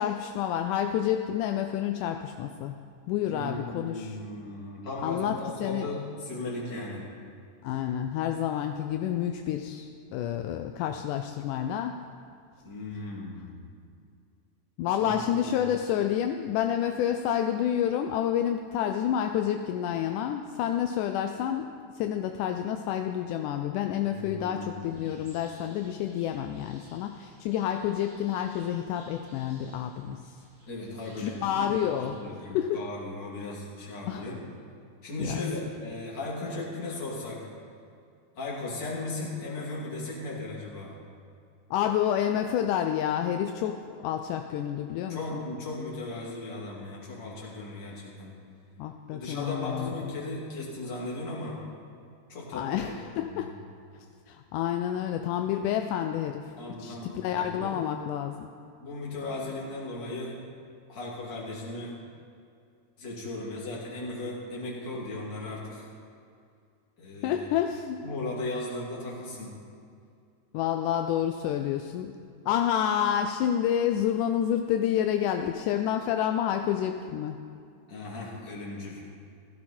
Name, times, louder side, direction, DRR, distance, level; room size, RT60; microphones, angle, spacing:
voice 1, 0.0-2.8 3.1-4.2 5.0-5.9 7.6-11.9 14.8-21.7 22.0-30.2 31.2-32.2 32.5-32.8 34.1-34.2 35.2-35.4 41.7-45.5 48.8-49.9 52.5-53.5 54.3-56.4 56.8-58.5 67.2-68.0 70.5-72.1 72.5-77.4, left 10 dB, 80° left, 6 dB, 2.1 m, -29 dB
voice 2, 3.2-7.1 12.6-13.8 15.0-15.6 24.0-25.1 30.7-34.4 35.0-37.4 38.3-40.9 45.1-48.4 49.1-51.6 52.3-53.5 56.6-57.8 58.8-60.4 60.9-62.0 63.0-65.8 67.0-67.5 68.0-69.5 77.9-79.0, left 2 dB, 35° left, -5 dB, 3.2 m, -37 dB
sound 1, 24.8-32.2, right 2 dB, 85° right, 4.8 m, -57 dB
16.0 x 14.5 x 4.4 m, 2.4 s
omnidirectional pair, 3.7 m